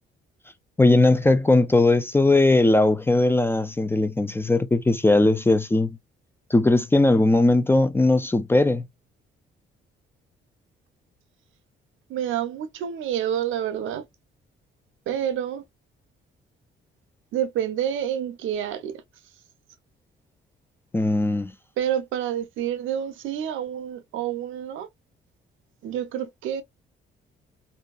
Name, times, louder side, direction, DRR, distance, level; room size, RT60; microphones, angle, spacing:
voice 1, 0.8-6.0 6.5-8.9 20.9-21.5, left 2 dB, 10° left, 0.3 m, -19 dB
voice 2, 12.1-14.1 15.1-15.6 17.3-19.0 21.8-24.9 25.8-26.6, right 10 dB, 80° right, 0.6 m, -28 dB
2.7 x 2.2 x 2.3 m
cardioid pair, 90°, 20 cm